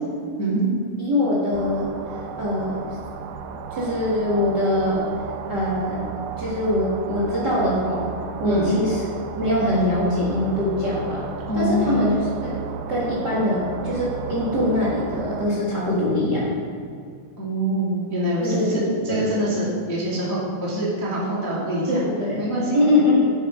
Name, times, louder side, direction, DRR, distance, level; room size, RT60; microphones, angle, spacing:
voice 1, 1.0-1.9 2.4-2.8 3.7-5.0 5.5-6.0 6.4-8.1 8.4-9.1 9.4-11.2 11.5-12.1 12.4-12.5 12.9-16.5 18.4-18.7 19.1-19.3 21.9-22.4 22.7-23.3, left 1 dB, 40° right, -6 dB, 1.6 m, -22 dB
sound 1, 1.5-15.5, right 6 dB, 85° right, 2.5 m, -33 dB
voice 2, 11.5-12.0 17.4-22.0 22.4-22.8, right 1 dB, 10° left, -7 dB, 1.4 m, -24 dB
10.5 x 7.7 x 5.5 m, 2.3 s
omnidirectional pair, 4.2 m